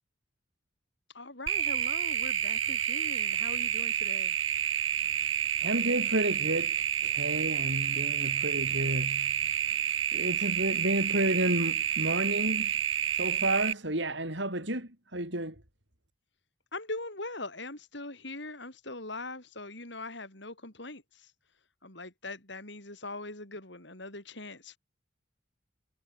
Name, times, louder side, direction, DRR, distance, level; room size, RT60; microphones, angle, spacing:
voice 1, 1.1-4.4 16.7-21.0 21.8-24.8, left 2 dB, 60° left, 5.5 m, -41 dB
sound 1, 1.5-13.7, right 9 dB, 85° right, 3.8 m, -29 dB
voice 2, 5.6-6.8 7.0-9.3 10.1-12.7 13.2-15.6, right 1 dB, 60° right, 7.5 m, -31 dB
head